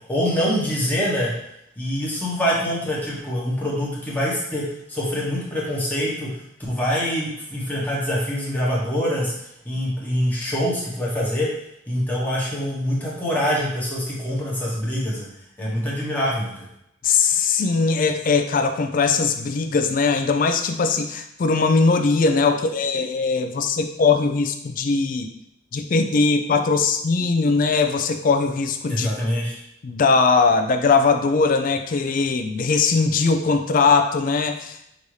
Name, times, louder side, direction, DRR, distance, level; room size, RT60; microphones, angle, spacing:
voice 1, 0.1-1.3 1.8-9.3 9.6-11.5 11.9-15.3 15.6-16.5 28.9-29.6, equal, 10° left, -6 dB, 1.0 m, -25 dB
voice 2, 17.0-25.3 25.7-29.1 29.8-34.9, left 4 dB, 45° left, 7 dB, 0.4 m, -20 dB
5.1 x 2.7 x 3.1 m, 0.78 s
head